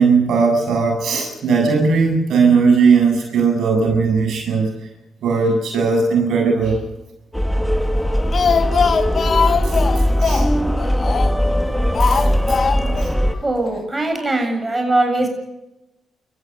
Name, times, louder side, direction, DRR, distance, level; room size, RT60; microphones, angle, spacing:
voice 1, 0.0-4.7 5.2-6.8 7.5-7.7 9.6-10.4 12.0-12.6 13.0-13.1, right 5 dB, 75° right, 2 dB, 7.8 m, -18 dB
sound 1, 7.3-13.4, equal, 5° left, 2.3 m, -19 dB
Speech, 8.0-11.5 11.9-13.1 13.3-13.4 13.7-13.8, left 6 dB, 50° left, 1.1 m, -21 dB
voice 2, 13.4-15.3, right 2 dB, 20° right, 4 dB, 7.6 m, -20 dB
29.0 x 15.0 x 6.8 m, 0.95 s
supercardioid pair, 60°, 0 cm